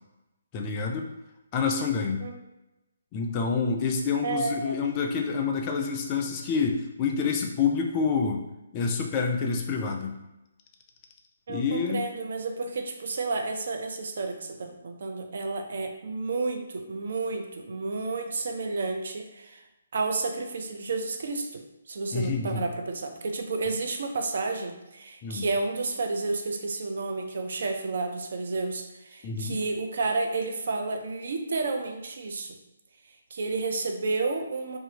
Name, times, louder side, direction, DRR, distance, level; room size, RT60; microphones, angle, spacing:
voice 1, 0.5-1.1 1.5-2.2 3.1-8.4 8.7-10.1 11.5-12.0 22.1-22.6 25.2-25.4 29.2-29.6, left 5 dB, 25° left, 2 dB, 0.3 m, -27 dB
voice 2, 4.2-4.8 11.5-19.6 19.9-32.6 33.3-34.8, right 3 dB, 55° right, 4 dB, 0.4 m, -31 dB
2.6 x 2.4 x 2.7 m, 0.96 s
figure-of-eight pair, 135°, 0 cm